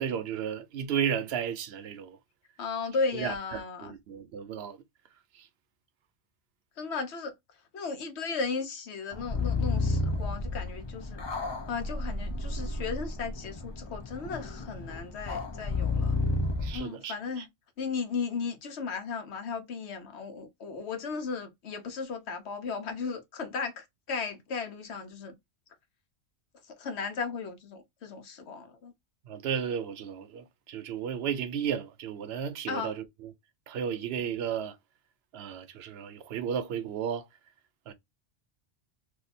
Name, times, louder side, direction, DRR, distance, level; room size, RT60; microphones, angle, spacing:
voice 1, 0.0-2.2 3.1-4.8 16.6-17.1 29.3-32.9 33.2-33.3 33.7-34.7 35.3-37.2 37.9-38.0, right 8 dB, 70° right, 0.8 m, -33 dB
voice 2, 2.6-3.9 6.8-11.2 11.7-16.2 16.7-17.5 17.8-25.3 26.6-28.9 32.7-33.0, left 5 dB, 75° left, 1.0 m, -35 dB
sound 1, 9.1-16.8, left 3 dB, 35° left, 0.4 m, -32 dB
2.7 x 2.2 x 4.0 m
omnidirectional pair, 1.2 m